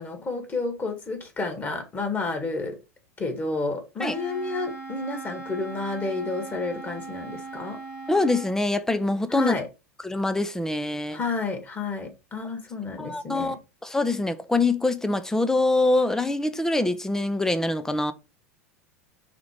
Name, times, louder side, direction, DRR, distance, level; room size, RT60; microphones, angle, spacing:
voice 1, 0.0-2.8 3.2-7.8 9.3-9.7 11.1-13.6, left 3 dB, 25° left, 1.9 m, -30 dB
Wind instrument woodwind instrument, 4.0-8.6, right 3 dB, 75° left, 1.7 m, -39 dB
voice 2, 8.1-9.5 10.0-11.2 13.0-13.6 13.8-18.1, left 2 dB, 5° left, 0.7 m, -24 dB
5.2 x 3.9 x 4.9 m
figure-of-eight pair, 85°, 8 cm